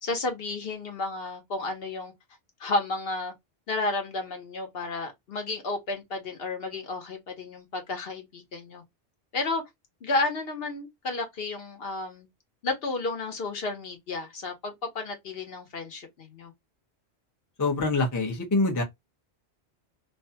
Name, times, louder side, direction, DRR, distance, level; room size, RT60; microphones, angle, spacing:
voice 1, 0.0-2.1 2.6-3.3 3.7-8.8 9.3-9.6 10.0-12.3 12.6-16.5, left 2 dB, 65° left, 1.0 m, -32 dB
voice 2, 17.6-18.8, left 3 dB, 20° left, 0.6 m, -25 dB
2.5 x 2.2 x 2.6 m
omnidirectional pair, 1.1 m